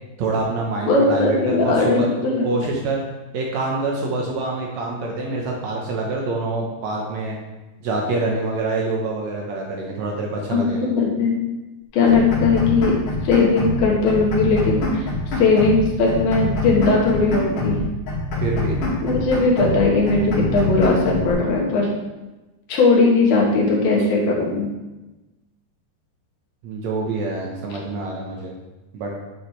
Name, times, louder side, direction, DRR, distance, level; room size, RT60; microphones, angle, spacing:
voice 1, 0.2-2.1 2.4-3.0 3.3-7.4 7.8-10.9 18.4-18.8 26.6-28.5 28.9-29.1, right 3 dB, 90° right, -1 dB, 1.5 m, -26 dB
voice 2, 0.9-2.5 10.5-11.4 11.9-12.9 13.2-15.1 15.4-17.9 19.0-21.9 22.7-24.7, left 3 dB, 70° left, -2 dB, 3.1 m, -18 dB
sound 1, 12.1-13.8 14.1-15.8 16.1-17.8 18.1-19.8 20.1-21.3, left 2 dB, 50° left, 2.7 m, -25 dB
9.4 x 7.3 x 3.2 m, 1.1 s
omnidirectional pair, 4.7 m